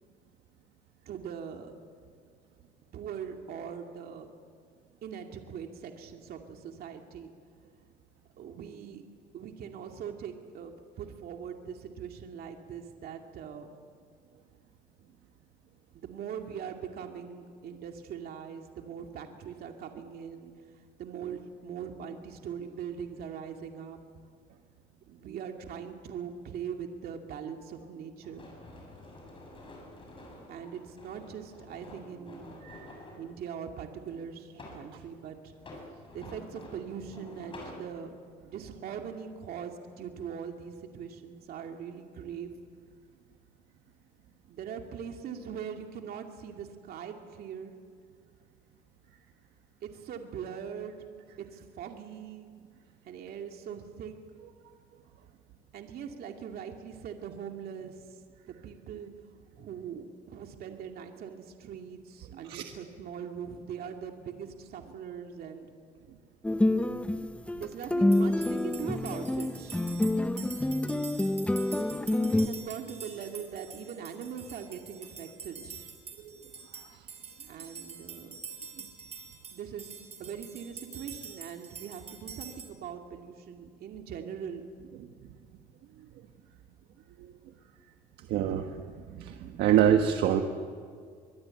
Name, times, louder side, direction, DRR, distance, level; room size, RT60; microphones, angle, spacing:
voice 1, 1.1-1.7 2.9-4.3 5.0-7.3 8.4-9.0 9.3-13.7 15.9-20.5 21.0-24.0 25.1-28.4 30.5-32.6 33.2-35.5 36.1-38.2 38.4-42.5 44.5-47.7 49.8-51.0 51.4-52.5 53.0-54.1 55.7-58.2 58.5-59.1 59.5-65.7 67.5-69.8 72.1-75.9 77.5-78.4 79.5-79.9 80.2-84.6, right 7 dB, 65° right, 3 dB, 2.4 m, -41 dB
sound 1, 28.2-33.3 34.1-34.9 35.5-37.8, left 2 dB, 30° left, 7.6 m, -49 dB
voice 2, 32.6-32.9 62.5-62.6 76.2-76.3 87.2-87.3 88.3-88.7 89.1-90.4, right 10 dB, 80° right, 5 dB, 1.4 m, -26 dB
sound 2, 66.4-72.5, left 1 dB, 5° left, 1.0 m, -27 dB
sound 3, 68.1-82.6, right 6 dB, 40° right, 5.7 m, -46 dB
24.5 x 22.0 x 9.0 m, 2.1 s
cardioid pair, 110°, 17 cm